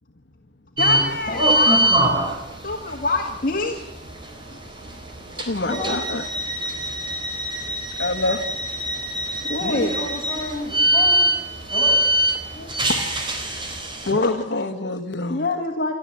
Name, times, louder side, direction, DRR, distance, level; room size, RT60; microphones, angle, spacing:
voice 1, 0.8-1.9 2.6-3.8 9.5-10.0 12.6-12.7 14.2-14.3 15.3-15.9, left 3 dB, 55° left, 2 dB, 1.8 m, -25 dB
sound 1, 0.8-14.1, right 1 dB, 30° right, 3.8 m, -24 dB
voice 2, 5.4-6.3 6.6-7.0 8.0-8.6 14.1-15.5, left 2 dB, 85° left, 7 dB, 1.2 m, -26 dB
voice 3, 9.6-11.3 11.7-12.0, left 1 dB, 25° left, -1 dB, 6.9 m, -30 dB
28.5 x 12.5 x 8.3 m, 0.93 s
head